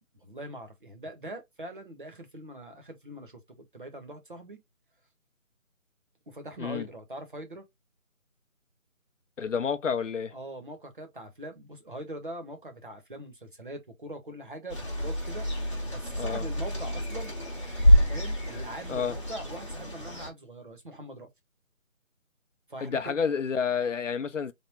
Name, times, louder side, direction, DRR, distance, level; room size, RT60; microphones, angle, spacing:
voice 1, 0.1-4.6 6.3-7.7 10.3-15.5 15.9-17.3 18.1-21.3 22.7-23.2, right 1 dB, 40° right, 0.8 m, -42 dB
voice 2, 9.4-10.3 16.2-16.4 18.9-19.2 22.8-24.5, left 6 dB, 60° left, 0.6 m, -29 dB
sound 1, 14.7-20.3, equal, 20° left, 0.9 m, -27 dB
3.5 x 2.1 x 4.0 m
figure-of-eight pair, 170°, 42 cm